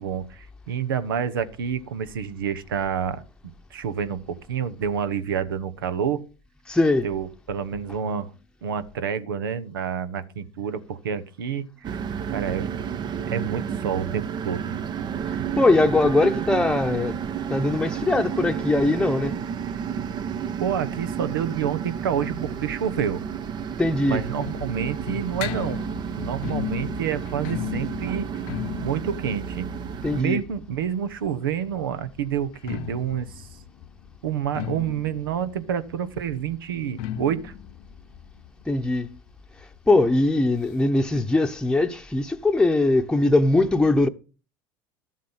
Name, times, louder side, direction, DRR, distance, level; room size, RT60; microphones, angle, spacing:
voice 1, 0.0-6.3 7.0-8.3 8.6-12.0 12.3-12.8 13.3-14.7 20.6-23.2 24.1-25.8 26.1-28.3 28.8-29.6 30.1-33.5 34.2-37.5, right 8 dB, 90° right, 1.1 m, -28 dB
voice 2, 6.7-7.1 15.6-17.2 17.5-19.3 23.8-24.2 30.0-30.4 38.7-39.1 39.9-44.1, left 2 dB, 5° left, 0.9 m, -21 dB
sound 1, 11.8-30.2, right 7 dB, 40° right, 0.8 m, -31 dB
sound 2, 23.6-31.3 32.4-39.8 40.1-40.2 40.4-40.5 41.2-41.3, left 11 dB, 65° left, 0.8 m, -37 dB
12.5 x 7.5 x 5.6 m
hypercardioid pair, 95°, 11 cm